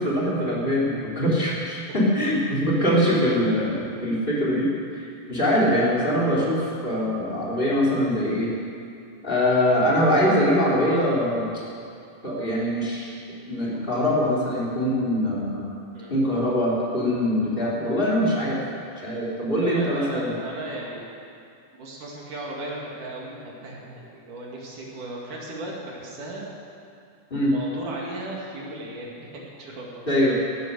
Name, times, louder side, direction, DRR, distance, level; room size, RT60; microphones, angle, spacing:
voice 1, 0.0-4.7 5.0-8.5 9.2-11.5 12.2-13.1 13.5-15.6 16.1-18.6 19.0-20.3 27.3-27.5 30.1-30.4, equal, 15° left, -5 dB, 2.1 m, -23 dB
voice 2, 19.6-21.1 21.7-26.5 27.4-30.1, right 2 dB, 50° right, -3 dB, 3.0 m, -36 dB
17.5 x 11.5 x 6.7 m, 2.4 s
omnidirectional pair, 5.6 m